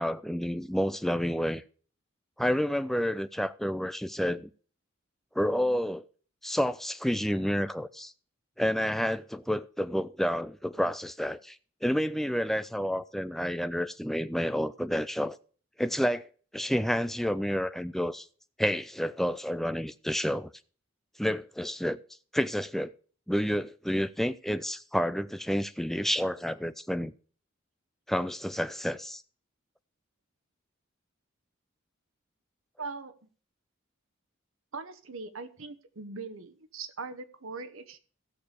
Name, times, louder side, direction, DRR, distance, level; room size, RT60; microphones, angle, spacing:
voice 1, 0.0-1.6 2.4-4.5 5.4-6.0 6.4-8.1 8.6-11.6 11.8-15.4 15.8-16.3 16.5-18.3 18.6-20.5 21.2-22.0 22.3-22.9 23.3-27.1 28.1-29.2, equal, ahead, 0.4 m, -29 dB
voice 2, 32.8-33.1 34.7-38.0, right 4 dB, 80° right, 1.1 m, -40 dB
15.0 x 6.8 x 4.9 m
head